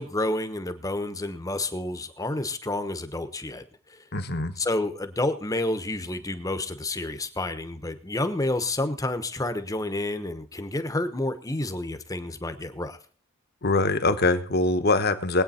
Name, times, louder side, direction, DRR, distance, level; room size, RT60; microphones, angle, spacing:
voice 1, 0.0-3.6 3.9-4.0 4.6-13.0, left 2 dB, 15° left, 10 dB, 1.0 m, -29 dB
voice 2, 4.1-4.5 13.6-15.4, left 2 dB, 50° left, 9 dB, 1.1 m, -23 dB
21.0 x 8.7 x 4.3 m, 0.44 s
head